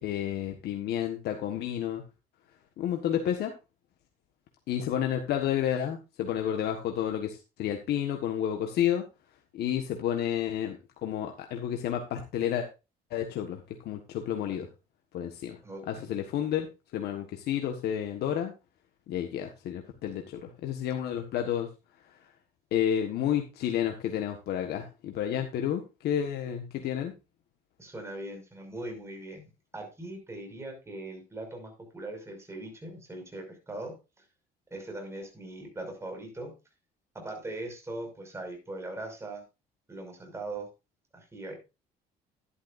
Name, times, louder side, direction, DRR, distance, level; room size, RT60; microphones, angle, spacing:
voice 1, 0.0-2.0 2.8-3.5 4.7-9.0 9.5-12.7 13.1-14.7 15.1-15.6 15.9-16.7 16.9-18.5 19.1-21.7 22.7-27.1, left 10 dB, 70° left, 4 dB, 1.5 m, -30 dB
voice 2, 15.6-16.1 27.8-29.5 29.7-33.9 34.7-36.5 37.1-39.4 39.9-40.7 41.1-41.6, right 2 dB, 15° right, 3 dB, 5.9 m, -40 dB
11.5 x 11.5 x 2.6 m, 0.28 s
cardioid pair, 110°, 17 cm